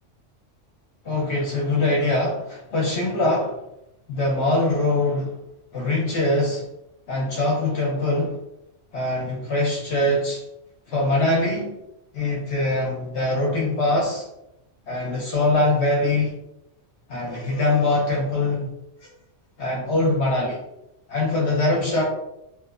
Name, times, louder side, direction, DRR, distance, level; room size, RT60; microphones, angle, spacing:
voice 1, 1.0-3.6 4.1-5.3 5.7-6.7 7.1-8.4 8.9-10.4 10.9-11.7 12.1-14.3 14.9-16.4 17.1-18.7 19.6-20.6 21.1-22.0, left 2 dB, 65° left, -3 dB, 0.9 m, -23 dB
2.8 x 2.0 x 2.4 m, 0.86 s
omnidirectional pair, 1.3 m